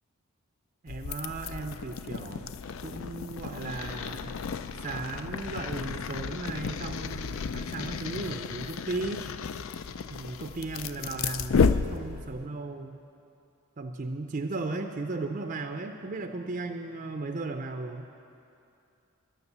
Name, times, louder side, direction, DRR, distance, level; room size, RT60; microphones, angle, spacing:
voice 1, 0.8-2.5 2.8-4.3 4.8-9.3 10.1-13.0 13.8-18.1, right 3 dB, 40° right, 5 dB, 0.5 m, -36 dB
sound 1, 0.9-12.5, left 5 dB, 65° left, 0.4 m, -32 dB
12.0 x 9.7 x 6.8 m, 2.6 s
head